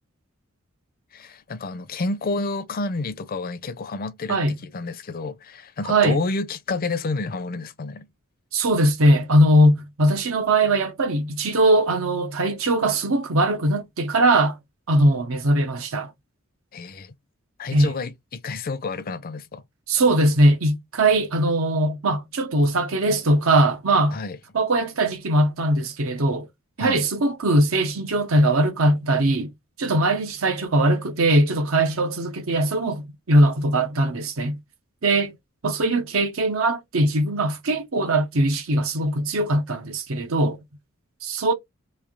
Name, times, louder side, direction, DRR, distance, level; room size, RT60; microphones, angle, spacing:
voice 1, 1.1-8.1 16.7-17.1 17.6-19.6 24.1-24.4 26.8-27.0, left 3 dB, 45° left, 0.5 m, -30 dB
voice 2, 5.9-6.2 8.5-14.6 14.9-16.1 17.7-17.9 19.9-24.2 24.5-26.5 26.8-29.5 29.8-34.6 35.0-35.4 35.6-40.6 41.2-41.5, right 1 dB, 85° right, 0.8 m, -20 dB
3.2 x 2.7 x 3.6 m
head